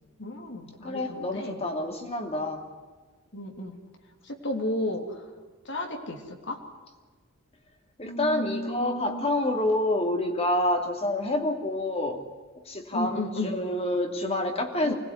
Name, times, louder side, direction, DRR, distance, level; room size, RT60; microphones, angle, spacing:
voice 1, 0.2-1.5 3.3-3.8 4.2-5.0 5.6-6.6 8.0-9.2 12.9-13.5 14.8-14.9, left 1 dB, 60° left, 3 dB, 3.2 m, -33 dB
voice 2, 0.8-2.7 8.0-12.2 12.6-14.9, left 1 dB, 30° left, 4 dB, 2.8 m, -28 dB
25.5 x 20.0 x 9.8 m, 1.4 s
head